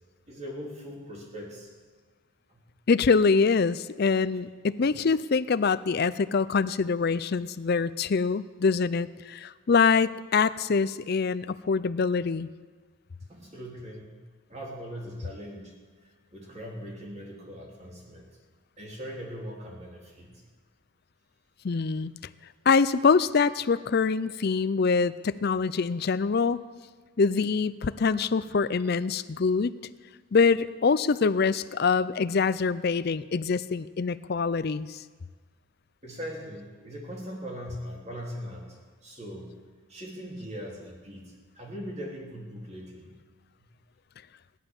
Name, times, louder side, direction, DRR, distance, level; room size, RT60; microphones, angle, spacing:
voice 1, 0.3-1.7 2.5-2.6 4.8-4.9 13.3-14.2 14.5-15.8 16.3-18.2 18.8-20.4 36.0-39.6 39.9-43.1 43.6-43.7, equal, 30° right, -1 dB, 3.0 m, -40 dB
voice 2, 2.9-12.5 21.6-22.1 22.7-26.6 27.2-29.7 30.3-35.0, left 5 dB, 45° left, 15 dB, 0.4 m, -24 dB
15.5 x 11.5 x 7.1 m, 1.5 s
head